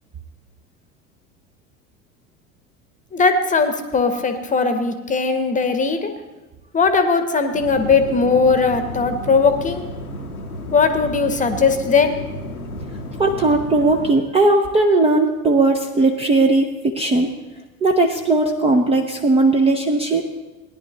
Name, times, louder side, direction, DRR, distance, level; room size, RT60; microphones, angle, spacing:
voice 1, 3.1-6.1 6.7-9.8 10.7-12.2, left 4 dB, 20° left, 8 dB, 1.0 m, -18 dB
sound 1, 7.5-14.1, equal, 85° left, 1.1 m, -32 dB
voice 2, 13.2-17.4 17.8-20.2, right 2 dB, 15° right, 3 dB, 0.6 m, -17 dB
18.0 x 10.0 x 3.0 m, 1.2 s
figure-of-eight pair, 75°, 43 cm